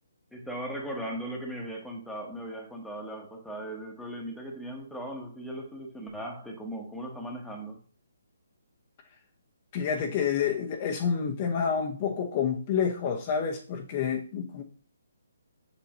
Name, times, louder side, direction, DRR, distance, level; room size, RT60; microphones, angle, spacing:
voice 1, 0.3-7.8, right 1 dB, ahead, 1.3 m, -38 dB
voice 2, 9.7-14.6, left 7 dB, 35° left, 0.9 m, -28 dB
7.0 x 6.7 x 3.1 m
figure-of-eight pair, 140°, 0 cm